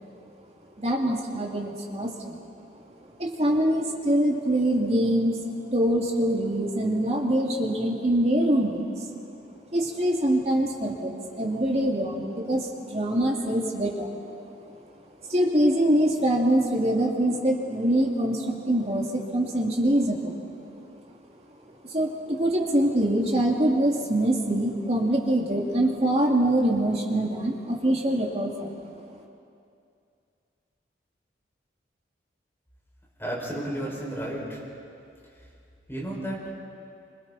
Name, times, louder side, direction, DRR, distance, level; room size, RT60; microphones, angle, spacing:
voice 1, 0.8-2.4 3.2-5.4 5.7-9.1 9.7-14.4 15.2-20.4 21.9-28.9, right 1 dB, 35° right, -1 dB, 2.6 m, -24 dB
voice 2, 33.2-34.6 35.9-36.5, right 1 dB, 15° left, -5 dB, 5.9 m, -32 dB
28.5 x 26.0 x 4.3 m, 2.5 s
head